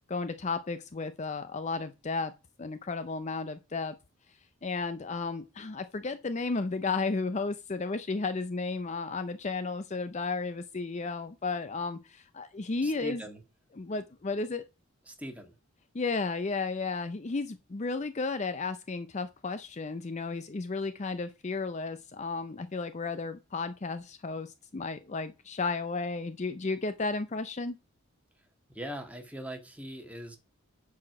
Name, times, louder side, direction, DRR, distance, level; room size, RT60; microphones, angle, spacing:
voice 1, 0.1-2.3 2.6-4.0 4.6-13.2 13.8-14.6 15.9-27.8, left 3 dB, 35° left, 0.5 m, -33 dB
voice 2, 12.8-13.4 15.1-15.5 28.7-30.4, equal, 5° right, 1.7 m, -41 dB
10.0 x 4.9 x 5.9 m
head